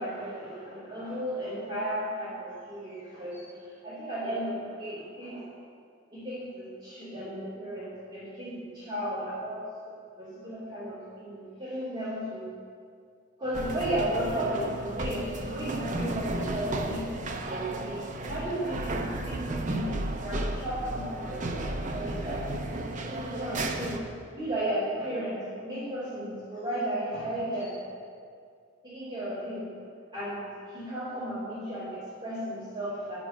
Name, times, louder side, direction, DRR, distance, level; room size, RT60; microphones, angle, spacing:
voice 1, 0.0-5.5 6.1-12.5 13.4-22.5 23.1-24.1 24.3-27.8 28.8-29.7 30.1-33.2, right 1 dB, 25° right, -10 dB, 2.4 m, -34 dB
sound 1, 13.5-24.0, right 1 dB, 45° right, 0.7 m, -34 dB
10.0 x 6.2 x 7.2 m, 2.3 s
head